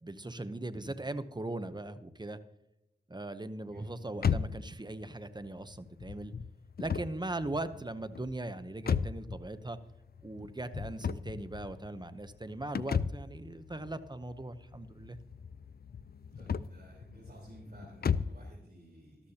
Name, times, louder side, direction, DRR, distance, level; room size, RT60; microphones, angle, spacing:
voice 1, 0.0-2.4 3.1-6.3 6.8-9.8 10.2-15.2, right 2 dB, 25° right, 11 dB, 0.8 m, -39 dB
voice 2, 3.7-4.0 7.6-7.7 16.3-19.3, equal, 55° right, -5 dB, 4.0 m, -54 dB
sound 1, 4.2-18.5, left 6 dB, 65° left, 0.4 m, -36 dB
13.0 x 13.0 x 2.8 m, 0.89 s
wide cardioid pair, 55°, 18 cm